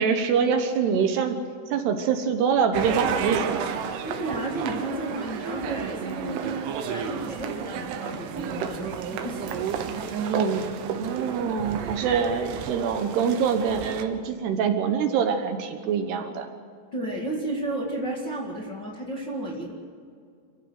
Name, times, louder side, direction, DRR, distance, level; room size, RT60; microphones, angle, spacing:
voice 1, 0.0-1.4 1.7-3.8 10.8-16.5, right 6 dB, 70° right, 7 dB, 3.0 m, -25 dB
sound 1, 2.7-14.0, right 7 dB, 90° right, 3.8 m, -31 dB
voice 2, 4.0-9.7 16.9-19.7, right 1 dB, 40° left, -2 dB, 1.7 m, -33 dB
27.5 x 15.5 x 7.9 m, 2.3 s
omnidirectional pair, 5.4 m